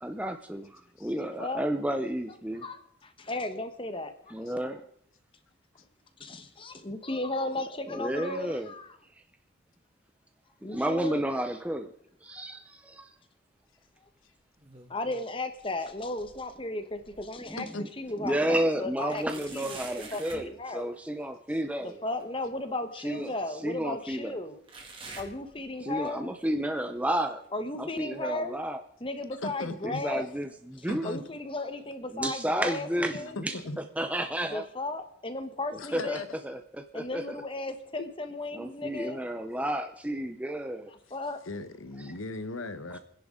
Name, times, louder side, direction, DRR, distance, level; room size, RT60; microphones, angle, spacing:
voice 1, 0.0-2.6 4.3-4.9 7.9-8.7 10.6-11.9 12.2-13.1 17.4-17.7 18.2-22.0 23.0-23.3 23.6-24.4 25.8-27.4 27.8-28.8 29.8-31.1 32.1-33.6 34.0-34.7 35.9-37.3 38.5-40.9, right 1 dB, 5° right, 6 dB, 0.6 m, -31 dB
voice 2, 1.2-1.7 2.6-4.6 6.2-9.0 10.6-11.2 14.9-17.7 18.0-18.4 18.8-19.2 19.5-19.8 20.1-20.9 21.8-24.6 25.2-26.3 27.5-28.6 29.0-30.3 30.8-33.4 34.5-36.2 36.9-39.2 40.9-41.4, left 2 dB, 25° left, 9 dB, 1.1 m, -35 dB
sound 1, 14.6-15.2 15.6-17.5 18.0-18.1 19.1-20.5 22.2-22.3 23.2-23.3 24.7-26.1 26.4-26.8 27.4-27.5 28.4-28.5, right 3 dB, 25° right, 2.3 m, -47 dB
voice 3, 29.4-30.0 30.9-31.2 33.4-33.8 35.8-36.3 38.0-38.1 41.4-43.0, left 2 dB, 85° left, 11 dB, 1.1 m, -37 dB
28.0 x 10.5 x 3.7 m, 0.70 s
head